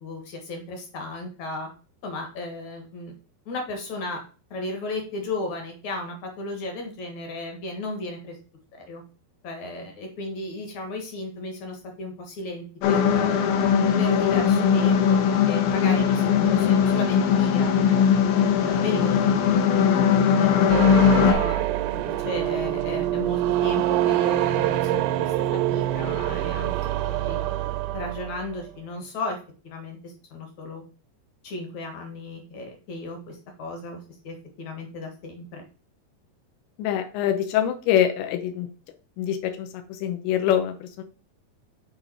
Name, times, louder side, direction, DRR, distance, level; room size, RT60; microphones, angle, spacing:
voice 1, 0.0-1.7 2.0-3.2 3.5-4.2 4.5-8.4 8.7-9.0 9.4-13.5 14.0-18.0 18.6-19.4 20.4-20.9 21.2-21.7 21.9-26.7 27.1-27.5 27.9-29.4 29.6-30.8 31.4-35.7, left 2 dB, 55° left, 3 dB, 2.2 m, -35 dB
sound 1, 12.8-21.3, left 7 dB, 70° left, 2.3 m, -20 dB
sound 2, 20.7-28.6, right 14 dB, 80° right, 2.7 m, -25 dB
voice 2, 36.8-38.7 39.2-41.0, left 10 dB, 90° left, 5 dB, 3.1 m, -25 dB
8.0 x 4.1 x 4.3 m, 0.37 s
omnidirectional pair, 5.1 m